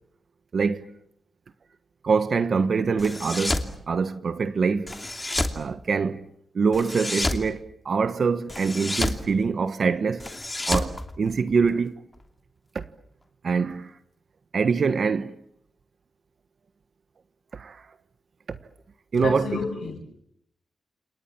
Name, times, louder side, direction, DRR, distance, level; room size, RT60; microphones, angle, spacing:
voice 1, 2.0-5.0 5.5-6.2 6.5-10.2 10.7-11.9 12.7-12.8 13.4-13.9 14.5-15.3 17.5-17.8 19.1-19.5, right 5 dB, 50° right, 1.3 m, -24 dB
sound 1, 3.0-3.7 4.9-5.6 6.7-7.5 8.5-9.2 10.2-11.7, left 2 dB, 15° left, 2.8 m, -29 dB
voice 2, 19.2-20.0, left 5 dB, 80° left, 7.5 m, -30 dB
29.5 x 28.5 x 7.2 m
wide cardioid pair, 135°, 0 cm